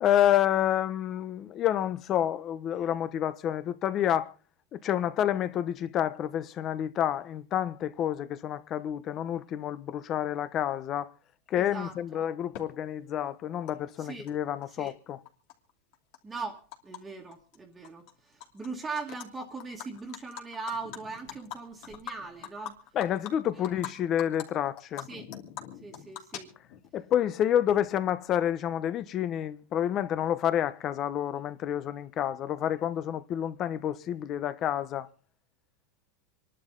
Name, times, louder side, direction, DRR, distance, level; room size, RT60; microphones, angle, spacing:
voice 1, 0.0-4.3 4.7-11.1 11.5-15.2 22.9-25.1 26.9-35.1, left 10 dB, 30° left, 1.1 m, -29 dB
voice 2, 11.6-12.3 14.0-14.3 14.7-14.9 16.2-22.9 23.7-23.8 25.0-25.3 25.7-26.5, right 4 dB, 15° right, 1.9 m, -40 dB
Animal, 12.5-12.6 13.7-13.8 14.0-14.9 15.3-17.0 17.3-17.6 17.8-18.7 19.0-19.3 19.6-23.9 24.2-24.4 24.8-26.9, left 10 dB, 55° left, 2.8 m, -42 dB
27.0 x 11.5 x 3.9 m
supercardioid pair, 145°, 0 cm